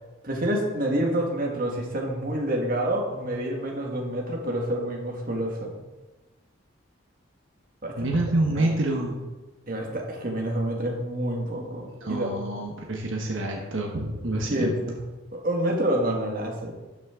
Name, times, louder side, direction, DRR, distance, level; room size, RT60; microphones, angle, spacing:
voice 1, 0.2-5.8 7.8-8.0 8.5-8.7 9.7-12.4 14.3-15.0 15.3-16.7, right 1 dB, 45° right, 0 dB, 1.6 m, -28 dB
voice 2, 8.0-9.2 12.0-14.8, right 2 dB, 70° right, 0 dB, 1.2 m, -27 dB
12.5 x 6.3 x 3.7 m, 1.2 s
head